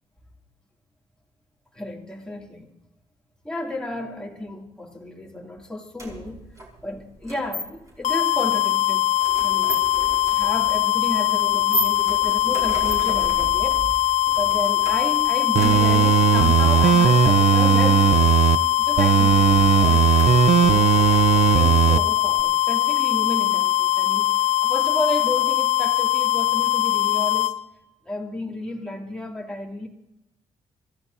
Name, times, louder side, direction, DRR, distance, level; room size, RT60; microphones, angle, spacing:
voice 1, 1.7-2.7 3.4-6.5 6.8-9.1 9.4-9.9 10.3-13.9 14.4-18.4 18.8-20.1 20.6-20.9 21.5-27.5 28.0-29.9, left 1 dB, 5° left, -2 dB, 2.5 m, -32 dB
sound 1, 6.0-21.7, right 1 dB, 25° right, 5.3 m, -36 dB
sound 2, 8.0-27.5, left 12 dB, 70° left, 0.9 m, -21 dB
sound 3, 15.6-18.6 19.0-22.0 22.4-22.5, right 9 dB, 65° right, 0.6 m, -17 dB
27.5 x 15.0 x 2.7 m, 0.92 s
cardioid pair, 130°, 12 cm